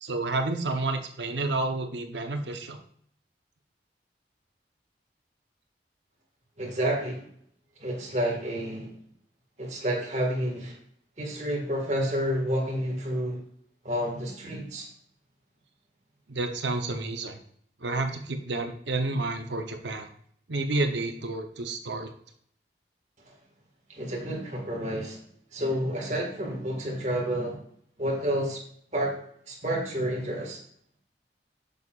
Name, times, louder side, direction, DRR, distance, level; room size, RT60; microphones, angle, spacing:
voice 1, 0.0-2.8 16.3-17.4 17.8-20.1 20.5-22.1, right 2 dB, 80° right, 6 dB, 0.9 m, -30 dB
voice 2, 6.6-7.3 7.8-8.9 9.6-10.8 11.2-13.4 13.8-14.9 23.9-25.2 25.5-27.6 28.0-28.6 28.9-30.6, equal, 40° right, 0 dB, 1.8 m, -30 dB
6.9 x 6.6 x 2.5 m, 0.64 s
head